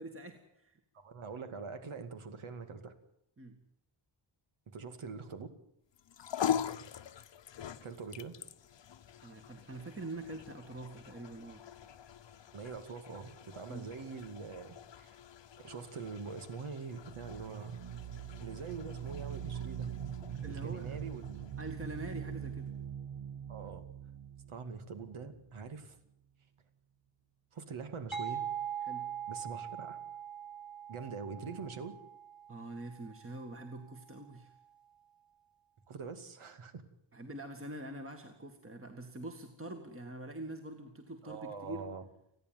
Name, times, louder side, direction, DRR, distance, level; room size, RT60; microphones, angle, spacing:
voice 1, 0.0-0.8 3.4-3.6 6.4-6.7 9.2-11.6 13.7-13.9 20.4-21.0 21.6-22.7 28.8-29.1 32.5-34.5 37.1-41.8, right 1 dB, 25° right, 4 dB, 2.0 m, -45 dB
voice 2, 0.9-2.9 4.7-5.5 7.8-8.3 12.5-15.2 15.6-17.8 18.4-19.9 20.5-21.5 21.9-22.0 23.5-23.9 24.5-26.0 27.5-28.5 29.3-30.0 30.9-31.9 35.9-36.8 41.2-42.0, right 5 dB, 90° right, 9 dB, 2.4 m, -44 dB
sound 1, 5.9-22.4, left 9 dB, 60° left, 0.9 m, -43 dB
sound 2, 17.0-25.7, right 9 dB, 70° right, 1.0 m, -43 dB
sound 3, 28.1-33.6, right 9 dB, ahead, 1.5 m, -42 dB
30.0 x 10.5 x 9.4 m, 0.75 s
wide cardioid pair, 145°, 48 cm